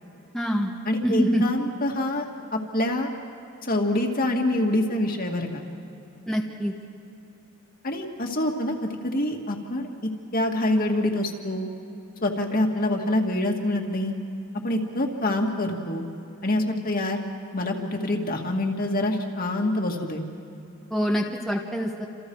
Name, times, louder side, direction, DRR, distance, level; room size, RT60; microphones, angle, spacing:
voice 1, 0.3-0.7 1.0-1.4 6.3-6.7 20.9-22.1, equal, ahead, -1 dB, 1.4 m, -25 dB
voice 2, 0.9-2.3 2.5-3.1 3.7-5.6 7.8-11.7 12.2-14.1 14.6-16.0 16.4-17.2 17.5-20.2, left 1 dB, 40° left, 2 dB, 2.2 m, -26 dB
29.5 x 27.5 x 4.8 m, 2.9 s
head